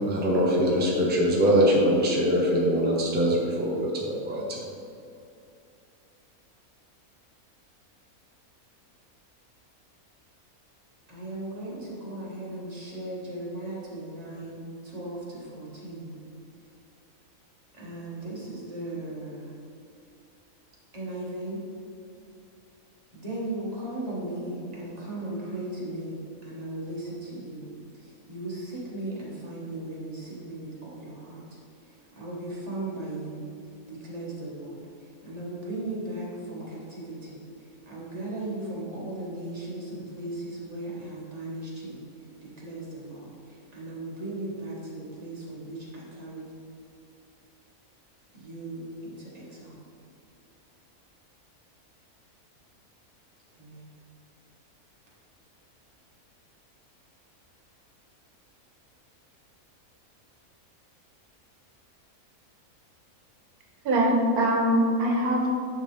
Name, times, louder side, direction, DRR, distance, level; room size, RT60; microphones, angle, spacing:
voice 1, 0.0-4.7, equal, 10° right, -3 dB, 0.8 m, -23 dB
voice 2, 11.1-16.2 17.7-19.5 20.9-21.6 23.1-31.4 31.9-33.4 33.9-46.5 48.3-49.8 53.6-53.9, right 1 dB, 25° right, -6 dB, 1.7 m, -37 dB
voice 3, 63.8-65.6, equal, 90° right, 0 dB, 1.5 m, -23 dB
10.0 x 4.0 x 3.5 m, 2.5 s
omnidirectional pair, 1.5 m